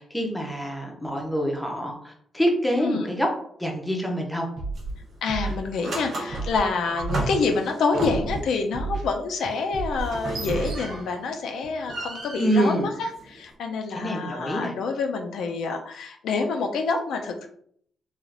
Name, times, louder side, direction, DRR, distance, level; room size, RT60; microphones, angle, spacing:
voice 1, 0.0-3.3 3.6-4.5 12.4-12.9 13.9-14.7, equal, 5° left, 1 dB, 0.5 m, -26 dB
Scratching (performance technique), 4.6-4.9 5.3-5.6 6.3-6.6 7.0-7.3 8.0-8.4 8.7-9.1 9.7-10.1 10.4-10.7, right 3 dB, 90° right, 0.9 m, -31 dB
sound 1, 4.7-5.0 5.4-8.5 10.0-11.3 11.6-13.5, right 2 dB, 45° right, 0.7 m, -33 dB
voice 2, 5.2-17.5, left 4 dB, 70° left, 4 dB, 0.3 m, -27 dB
3.2 x 2.4 x 2.4 m, 0.63 s
cardioid pair, 160°, 0 cm